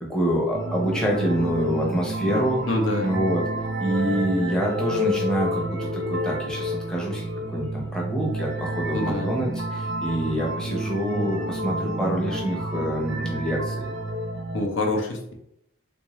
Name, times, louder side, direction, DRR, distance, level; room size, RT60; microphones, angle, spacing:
voice 1, 0.1-2.6 3.0-3.4 3.8-13.9, right 1 dB, 5° left, -3 dB, 0.7 m, -26 dB
sound 1, 0.5-14.7, equal, 65° right, 0.5 m, -29 dB
voice 2, 2.7-3.1 8.9-9.3 14.5-15.3, left 2 dB, 70° left, 1 dB, 0.7 m, -26 dB
3.5 x 2.6 x 3.0 m, 0.76 s
head